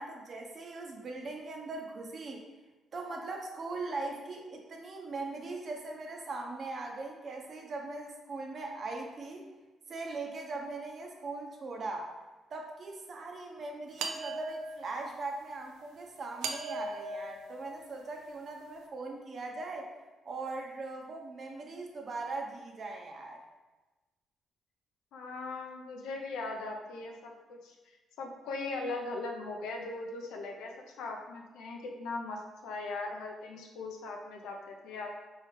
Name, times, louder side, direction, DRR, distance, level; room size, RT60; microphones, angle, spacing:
voice 1, 0.0-2.4 2.9-9.5 9.9-12.1 12.5-19.9 20.2-23.4, right 3 dB, 50° right, 1 dB, 0.8 m, -40 dB
sound 1, 14.0-15.1 16.4-18.3, right 3 dB, 90° right, 0.4 m, -39 dB
voice 2, 25.1-27.8 28.2-30.7 31.0-35.2, left 3 dB, 90° left, 2 dB, 0.6 m, -39 dB
4.6 x 3.2 x 3.3 m, 1.2 s
cardioid pair, 90°, 0 cm